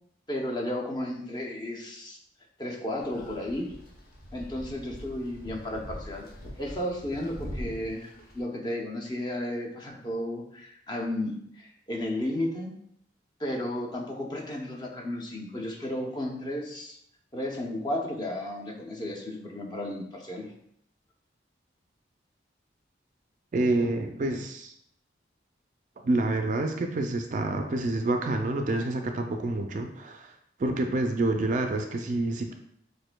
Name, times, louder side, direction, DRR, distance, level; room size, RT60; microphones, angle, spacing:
voice 1, 0.3-2.2 2.6-3.7 4.3-6.3 6.6-12.7 13.4-17.0 17.3-20.5, left 1 dB, 25° left, 0 dB, 0.6 m, -33 dB
sound 1, 3.0-8.4, equal, 50° left, 0.9 m, -43 dB
voice 2, 23.5-24.7 26.0-30.3 30.6-32.5, right 2 dB, 45° right, 5 dB, 0.3 m, -28 dB
6.4 x 2.6 x 2.2 m, 0.71 s
head